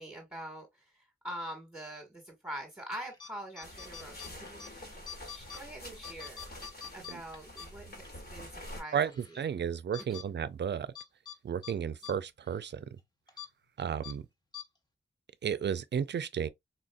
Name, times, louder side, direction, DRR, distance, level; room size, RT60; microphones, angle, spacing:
voice 1, 0.0-6.4 6.9-9.4 10.1-10.2, right 1 dB, 5° right, 1.3 m, -45 dB
sound 1, 3.1-3.3 3.6-4.7 5.1-5.6 6.0-8.1 8.5-8.6 9.1-9.4 9.9-10.2 10.9-11.4 11.6-11.7 12.0-12.1 12.5-12.6 13.3-13.5 14.0-14.1 14.5-14.6, left 7 dB, 20° left, 1.1 m, -45 dB
sound 2, 3.6-8.8, left 1 dB, 50° left, 1.6 m, -47 dB
voice 2, 9.4-10.9 11.4-12.8 13.8-14.2 15.4-16.5, right 8 dB, 60° right, 0.4 m, -33 dB
4.1 x 2.5 x 2.2 m
cardioid pair, 45°, 20 cm